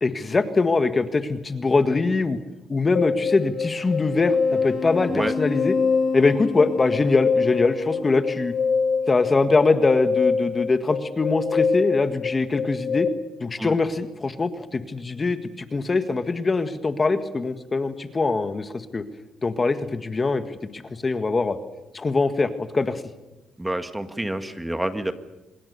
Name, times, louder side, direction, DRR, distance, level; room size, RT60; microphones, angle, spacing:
voice 1, 0.0-2.4 2.7-5.7 6.1-8.5 9.1-13.1 13.4-19.0 19.4-21.6 21.9-23.0, left 3 dB, 30° left, 9 dB, 1.7 m, -23 dB
sound 1, 3.0-13.1, left 5 dB, 60° left, 2.4 m, -25 dB
voice 2, 23.6-25.1, right 1 dB, 10° right, 9 dB, 1.7 m, -28 dB
26.5 x 21.0 x 6.9 m, 0.99 s
cardioid pair, 90°, 0 cm